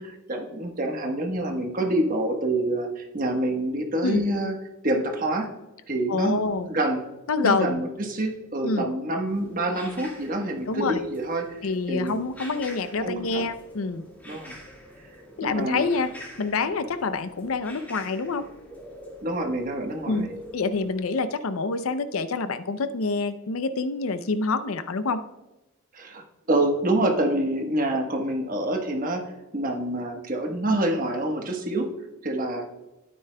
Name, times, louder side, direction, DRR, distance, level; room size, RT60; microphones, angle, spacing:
voice 1, 0.0-4.5 4.8-5.5 5.9-7.0 7.4-11.6 11.9-12.2 13.0-13.5 14.3-14.6 15.4-15.9 19.2-20.3 25.9-31.9 32.2-32.7, right 1 dB, 40° right, 3 dB, 1.2 m, -27 dB
voice 2, 6.1-6.7 7.3-7.8 8.6-8.9 10.7-11.0 11.6-14.0 15.4-16.1 16.4-18.5 20.1-20.3 20.5-25.2, left 4 dB, 75° left, 12 dB, 0.5 m, -26 dB
sound 1, 9.3-21.0, equal, 10° left, 2.0 m, -45 dB
12.5 x 9.3 x 2.2 m, 1.0 s
head